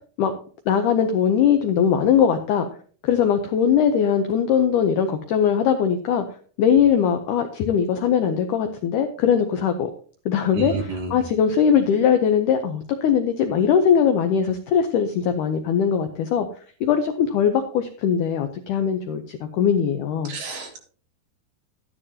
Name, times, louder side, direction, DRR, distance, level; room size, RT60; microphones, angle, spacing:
voice 1, 0.7-2.7 3.0-6.2 6.6-9.9 10.3-16.5 16.8-20.3, left 8 dB, 90° left, 7 dB, 1.8 m, -20 dB
voice 2, 10.5-11.2 20.2-20.8, right 4 dB, 55° right, 0 dB, 3.5 m, -30 dB
12.5 x 10.5 x 2.8 m, 0.43 s
omnidirectional pair, 4.6 m